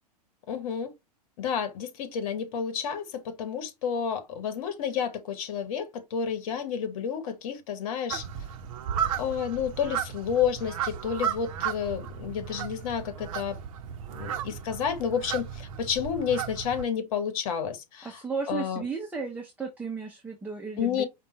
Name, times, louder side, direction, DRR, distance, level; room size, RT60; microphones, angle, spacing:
voice 1, 0.5-0.9 1.4-8.3 9.2-13.6 14.1-18.2 18.5-18.8 20.8-21.0, left 7 dB, 55° left, 1.0 m, -30 dB
sound 1, 8.1-16.9, right 9 dB, 55° right, 0.7 m, -34 dB
voice 2, 18.0-21.0, right 5 dB, 10° right, 0.7 m, -34 dB
5.2 x 2.2 x 3.0 m
figure-of-eight pair, 100°, 21 cm